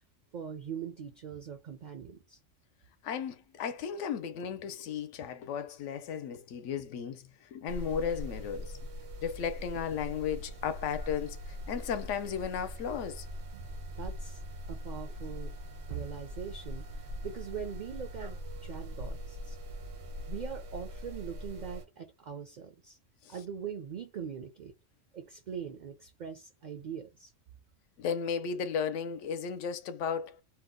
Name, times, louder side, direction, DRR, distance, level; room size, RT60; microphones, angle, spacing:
voice 1, 0.3-2.4 13.5-13.7 14.0-14.4 14.7-15.5 15.9-19.6 20.3-23.0 23.3-24.7 25.1-27.3, right 7 dB, 60° right, 0.4 m, -42 dB
voice 2, 3.0-8.8 9.2-13.3 23.3-23.4 28.0-30.4, left 7 dB, 80° left, 0.9 m, -35 dB
sound 1, 7.7-21.9, equal, 90° right, 1.2 m, -41 dB
2.8 x 2.1 x 3.6 m
omnidirectional pair, 1.3 m